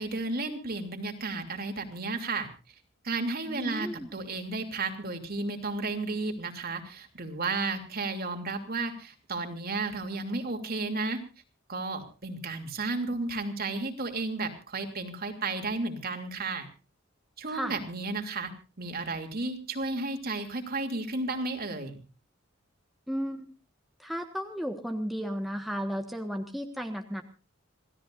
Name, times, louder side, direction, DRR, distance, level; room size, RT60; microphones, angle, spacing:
voice 1, 0.0-2.5 3.0-11.2 11.7-16.7 17.4-18.5 18.8-22.0, right 3 dB, 50° right, 5 dB, 3.0 m, -33 dB
voice 2, 3.5-4.1 17.5-17.7 23.1-23.5 24.0-27.2, equal, ahead, 3 dB, 1.5 m, -34 dB
27.5 x 16.5 x 2.6 m, 0.34 s
head